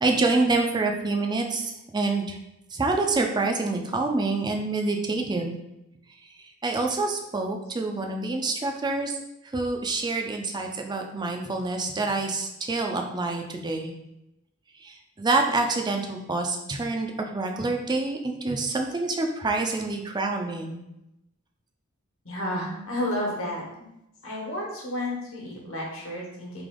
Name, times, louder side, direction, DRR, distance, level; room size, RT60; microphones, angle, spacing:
voice 1, 0.0-2.4 2.7-5.6 6.6-9.1 9.5-13.9 14.8-20.8, right 3 dB, 20° right, 3 dB, 0.4 m, -27 dB
voice 2, 22.2-23.9 24.2-26.6, left 1 dB, 65° left, -3 dB, 1.3 m, -31 dB
3.4 x 2.9 x 3.7 m, 0.87 s
head